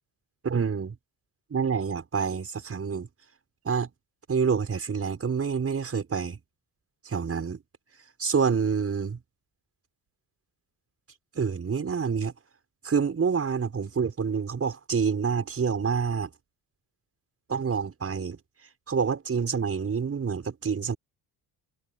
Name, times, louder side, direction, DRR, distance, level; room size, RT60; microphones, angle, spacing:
voice 1, 0.4-0.9 1.5-3.1 3.6-3.9 4.3-6.4 7.0-7.6 8.2-9.2 11.3-12.3 12.8-16.3 17.5-18.4 18.9-21.0, right 6 dB, 35° right, 6.4 m, -27 dB
cardioid pair, 130°, 43 cm